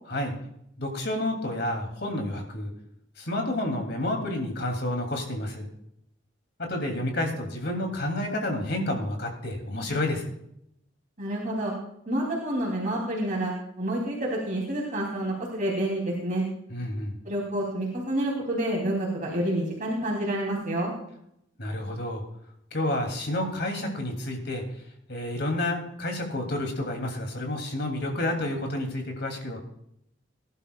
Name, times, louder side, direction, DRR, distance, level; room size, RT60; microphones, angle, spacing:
voice 1, 0.8-2.7 3.2-5.7 6.6-10.2 16.7-17.1 21.6-22.2 22.7-24.6 25.1-29.6, left 1 dB, 60° left, 3 dB, 2.9 m, -30 dB
voice 2, 11.2-11.7 12.1-16.4 17.2-20.9, right 1 dB, 40° right, -3 dB, 3.1 m, -28 dB
19.5 x 11.5 x 2.4 m, 0.74 s
head